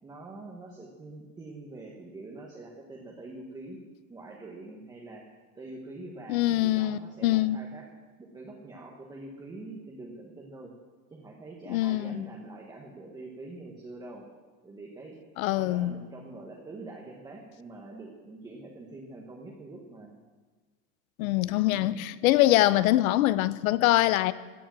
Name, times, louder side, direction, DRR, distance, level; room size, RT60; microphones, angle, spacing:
voice 1, 0.0-3.8 4.1-5.3 5.5-7.9 8.2-10.7 11.1-14.3 14.6-15.2 15.5-20.2 21.6-22.0, right 2 dB, 10° right, 1.1 m, -44 dB
voice 2, 6.3-7.6 11.7-12.3 15.4-15.9 21.2-24.3, left 15 dB, 60° left, 0.7 m, -24 dB
16.5 x 9.8 x 7.4 m
supercardioid pair, 170°, 48 cm